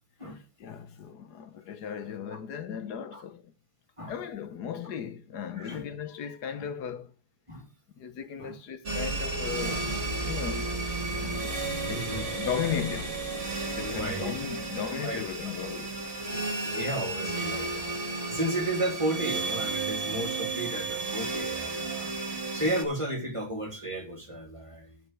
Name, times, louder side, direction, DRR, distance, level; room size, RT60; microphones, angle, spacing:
voice 1, 0.2-3.5 4.1-7.1 7.9-9.9 10.2-10.7 11.1-11.5 11.9-13.2 13.7-16.0 16.3-16.5, left 8 dB, 60° left, 1.4 m, -36 dB
sound 1, 8.9-22.8, right 3 dB, 35° right, 2.3 m, -33 dB
voice 2, 11.9-12.3 13.8-14.3 15.0-15.3 16.6-22.1 22.5-25.0, right 1 dB, 15° right, 2.6 m, -33 dB
10.5 x 5.5 x 6.2 m
omnidirectional pair, 2.1 m